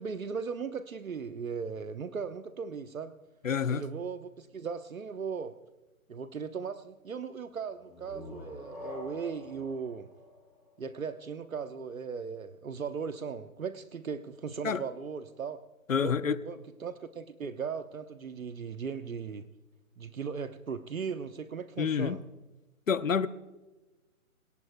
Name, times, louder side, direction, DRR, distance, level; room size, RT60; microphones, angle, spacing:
voice 1, 0.0-3.1 3.7-5.5 6.1-10.1 10.8-15.6 16.0-19.5 20.0-22.2, right 6 dB, 70° right, 1.0 m, -38 dB
voice 2, 3.4-3.8 14.6-14.8 15.9-16.4 21.8-22.2 22.9-23.3, left 6 dB, 65° left, 0.8 m, -28 dB
sound 1, 7.7-11.3, left 2 dB, ahead, 3.3 m, -46 dB
22.0 x 18.0 x 2.2 m
figure-of-eight pair, 160°, 43 cm